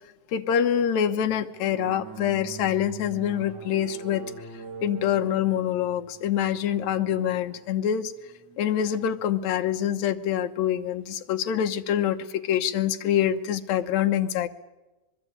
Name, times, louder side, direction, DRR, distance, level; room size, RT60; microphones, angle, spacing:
voice 1, 0.3-4.2 4.8-8.1 8.6-14.5, left 9 dB, 65° left, 7 dB, 2.1 m, -25 dB
sound 1, 1.5-9.7, right 5 dB, 70° right, 1.0 m, -44 dB
25.0 x 22.0 x 8.7 m, 1.1 s
omnidirectional pair, 4.0 m